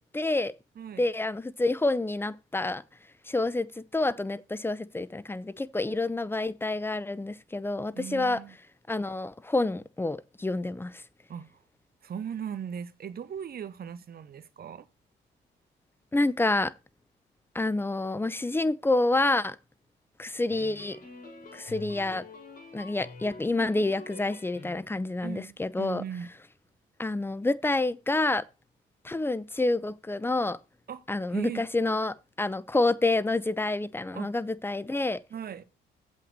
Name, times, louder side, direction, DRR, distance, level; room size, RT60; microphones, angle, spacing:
voice 1, 0.1-0.5 1.0-2.8 3.3-8.4 8.9-11.0 16.1-16.7 17.5-19.6 20.2-21.0 21.5-22.2 22.7-26.0 27.0-28.5 29.0-30.6 31.1-35.2, left 2 dB, 10° left, 0.6 m, -28 dB
voice 2, 0.7-1.1 7.9-8.6 11.3-11.6 12.0-14.9 25.2-26.3 30.9-31.0 31.3-31.6 34.1-34.3 35.3-35.6, right 8 dB, 50° right, 1.2 m, -38 dB
sound 1, 20.5-25.1, left 4 dB, 45° left, 5.6 m, -46 dB
7.7 x 5.8 x 6.6 m
cardioid pair, 90°, 20 cm